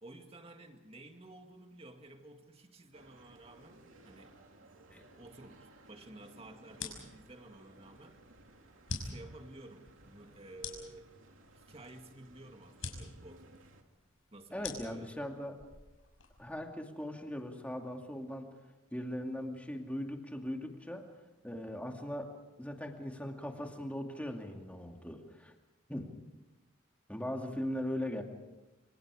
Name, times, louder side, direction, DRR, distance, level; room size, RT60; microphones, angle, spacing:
voice 1, 0.0-4.3 5.2-8.2 9.0-11.1 11.5-13.6 14.3-15.6, right 2 dB, 30° right, 5 dB, 2.1 m, -53 dB
sound 1, 2.9-13.8, right 2 dB, 90° right, 2.7 m, -59 dB
sound 2, 6.7-16.6, left 4 dB, 90° left, 5.8 m, -47 dB
voice 2, 14.5-15.5 16.4-18.5 18.9-21.0 21.4-22.3 22.6-25.5 25.9-26.1 27.1-28.2, left 1 dB, 5° left, 2 dB, 2.4 m, -39 dB
27.0 x 26.0 x 4.9 m, 1.1 s
head